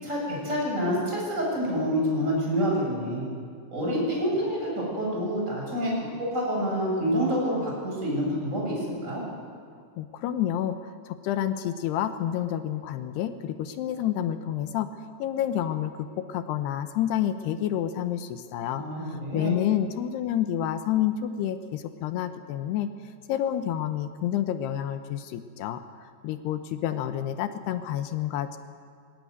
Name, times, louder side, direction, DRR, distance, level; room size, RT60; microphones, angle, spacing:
voice 1, 0.0-3.2 3.7-9.2 18.7-19.6, equal, 15° right, -3 dB, 7.2 m, -27 dB
voice 2, 10.0-10.8 11.1-14.9 15.2-18.8 19.3-22.9 23.3-25.8 26.2-28.6, left 11 dB, 80° left, 9 dB, 2.8 m, -29 dB
19.5 x 17.5 x 9.5 m, 2.1 s
omnidirectional pair, 5.0 m